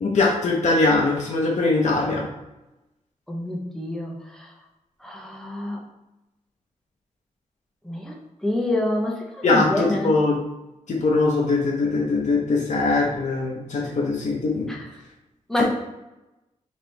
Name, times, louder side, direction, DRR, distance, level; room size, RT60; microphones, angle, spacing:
voice 1, 0.0-2.3 9.4-10.4 10.9-14.7, left 3 dB, 65° left, -2 dB, 0.7 m, -21 dB
voice 2, 3.3-4.5 5.0-5.8 7.8-8.1 8.4-10.1 14.7-14.9 15.5-15.6, left 1 dB, 5° left, -1 dB, 0.7 m, -27 dB
4.3 x 2.9 x 3.2 m, 0.99 s
wide cardioid pair, 145°, 13 cm